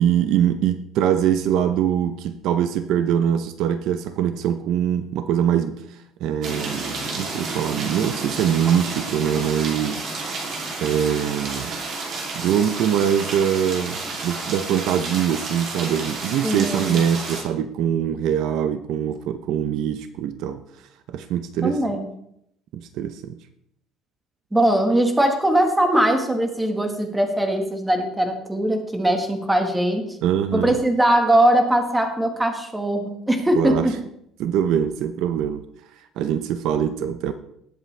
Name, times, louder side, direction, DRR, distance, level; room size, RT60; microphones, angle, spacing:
voice 1, 0.0-10.5 10.8-11.8 12.3-20.6 21.1-21.8 22.7-23.4 30.2-30.7 33.5-33.9 34.4-35.6 36.0-37.3, right 9 dB, 60° right, 10 dB, 0.7 m, -23 dB
sound 1, 6.4-17.4, right 3 dB, 45° right, 2.9 m, -31 dB
voice 2, 16.4-17.0 21.6-22.1 24.5-30.0 30.5-33.9, right 1 dB, 5° right, 4 dB, 1.5 m, -20 dB
19.0 x 8.1 x 3.4 m, 0.75 s
cardioid pair, 165°, 0 cm